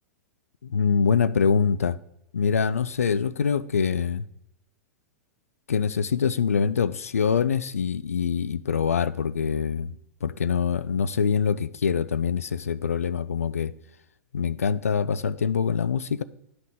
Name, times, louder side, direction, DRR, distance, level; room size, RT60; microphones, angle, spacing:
voice 1, 0.6-2.0 2.3-4.3 5.7-9.9 10.2-13.7 14.3-16.2, left 6 dB, 75° left, 0.3 m, -24 dB
9.9 x 5.5 x 3.6 m
figure-of-eight pair, 95°, 8 cm